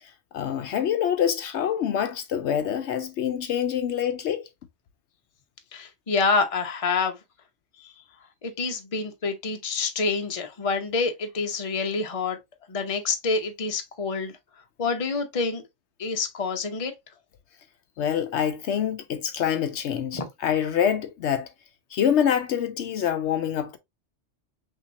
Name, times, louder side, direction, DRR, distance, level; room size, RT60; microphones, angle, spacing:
voice 1, 0.3-4.4 18.0-21.5 21.9-23.8, left 9 dB, 70° left, 0.8 m, -26 dB
voice 2, 5.7-7.2 7.8-7.9 8.4-12.4 12.7-14.3 14.8-15.6 16.0-16.9 20.1-20.2, left 4 dB, 35° left, 0.8 m, -27 dB
5.7 x 2.8 x 2.6 m
omnidirectional pair, 1.3 m